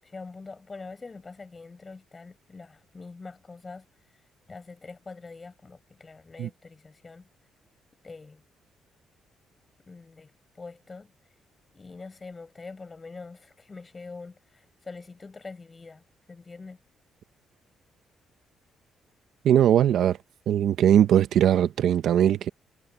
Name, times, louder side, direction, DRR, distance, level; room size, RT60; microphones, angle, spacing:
voice 1, 0.0-3.9 4.5-7.3 8.0-8.4 9.8-10.3 10.6-11.1 11.7-16.8, left 4 dB, 30° left, 6.8 m, -44 dB
voice 2, 19.4-20.2 20.5-22.5, right 10 dB, 75° right, 1.1 m, -20 dB
cardioid pair, 90°, 0 cm